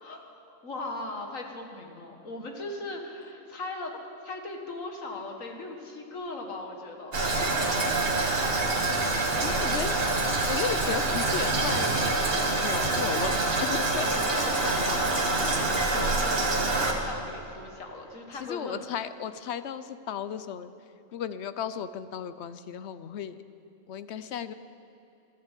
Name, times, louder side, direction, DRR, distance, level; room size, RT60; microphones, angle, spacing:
voice 1, 0.0-3.9 4.2-7.8 9.6-9.7 14.0-19.0, left 2 dB, 85° left, 2 dB, 2.1 m, -39 dB
Toilet flush, 7.1-16.9, right 2 dB, 50° right, 1.7 m, -26 dB
voice 2, 9.4-10.2 10.5-12.1 12.6-14.1 15.9-16.1 18.4-20.7 21.1-23.4 23.9-24.5, left 8 dB, 65° left, 13 dB, 0.9 m, -35 dB
15.0 x 11.5 x 8.2 m, 2.6 s
omnidirectional pair, 1.3 m